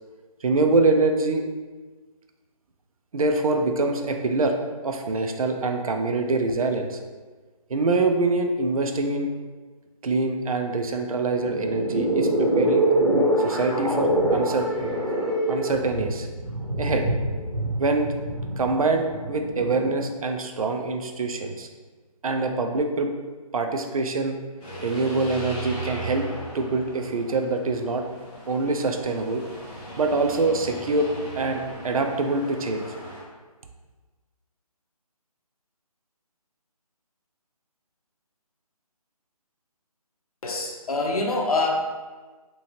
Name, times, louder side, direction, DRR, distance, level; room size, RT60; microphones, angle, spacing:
voice 1, 0.4-1.5 3.1-4.6 4.8-7.0 7.7-9.3 10.0-12.9 13.4-14.7 15.5-16.3 16.8-17.1 17.8-18.1 18.6-21.7 22.2-23.1 23.5-24.4 24.8-26.3 26.5-28.1 28.5-29.4 30.0-31.1 31.4-32.9, right 3 dB, 65° right, 4 dB, 0.4 m, -24 dB
sound 1, 11.3-20.0, right 1 dB, 20° right, 0.7 m, -25 dB
sound 2, 24.6-33.2, right 2 dB, 10° left, 0.5 m, -38 dB
voice 2, 40.4-41.7, left 3 dB, 70° left, 0 dB, 0.6 m, -25 dB
2.9 x 2.6 x 2.8 m, 1.3 s
figure-of-eight pair, 165°, 20 cm